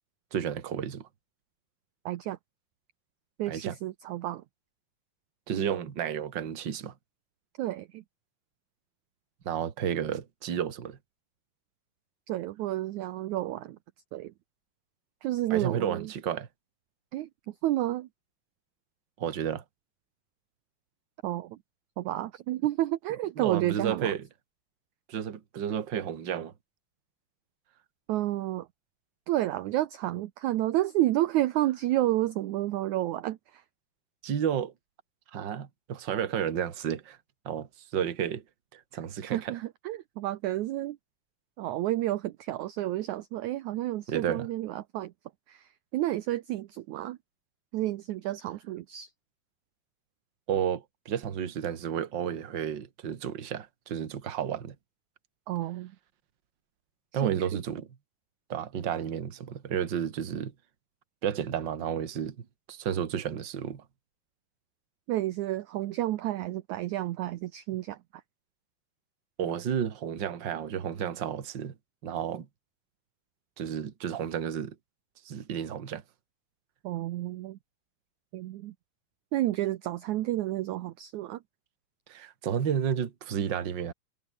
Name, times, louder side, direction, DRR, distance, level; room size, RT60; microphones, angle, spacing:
voice 1, 0.3-1.1 3.5-3.8 5.5-6.9 9.5-11.0 15.5-16.5 19.2-19.6 23.4-24.2 25.1-26.5 34.2-34.7 35.3-37.2 37.5-38.4 38.7-39.5 44.1-44.5 50.5-54.8 57.1-57.9 58.5-60.5 61.2-63.8 69.4-71.7 72.0-72.5 73.6-74.8 75.3-76.0 82.1-83.9, right 8 dB, 40° right, 1.8 m, -32 dB
voice 2, 2.1-2.4 3.4-4.4 7.6-8.0 12.3-13.8 14.1-14.3 15.2-16.1 17.1-18.1 21.2-21.6 22.0-24.1 28.1-28.7 29.3-33.6 39.3-41.0 41.6-45.1 45.5-47.2 47.7-49.1 55.5-55.9 57.1-57.5 65.1-68.2 76.8-77.6 78.3-78.7 79.3-81.4, right 15 dB, 75° right, 1.8 m, -30 dB
omnidirectional pair, 4.4 m